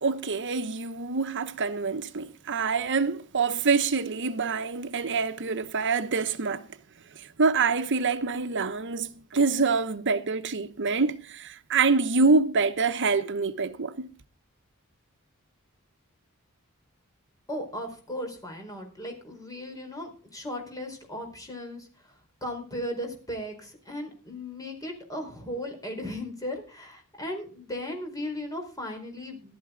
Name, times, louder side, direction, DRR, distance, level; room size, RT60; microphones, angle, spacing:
voice 1, 0.0-6.7 7.2-14.1, right 4 dB, 55° right, 1.0 m, -26 dB
voice 2, 17.5-22.1 22.4-29.6, left 1 dB, 15° left, 4.6 m, -36 dB
14.5 x 12.0 x 3.8 m
head